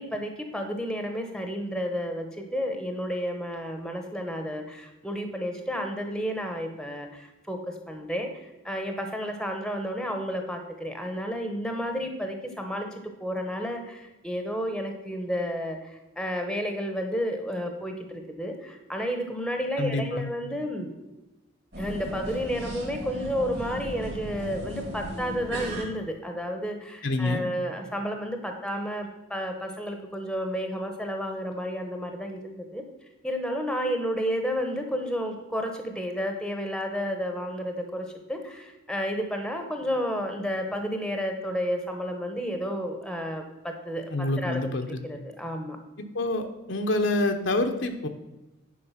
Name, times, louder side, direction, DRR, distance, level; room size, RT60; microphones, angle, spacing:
voice 1, 0.0-7.6 7.9-12.9 13.2-20.9 21.8-32.8 33.2-44.7 45.0-45.8, equal, 5° left, 4 dB, 1.0 m, -31 dB
voice 2, 19.8-20.3 27.0-27.5 44.1-45.0 46.0-48.1, left 2 dB, 60° left, 6 dB, 0.9 m, -27 dB
sound 1, 21.7-25.8, equal, 55° right, 2.8 m, -36 dB
10.0 x 5.4 x 5.7 m, 1.0 s
head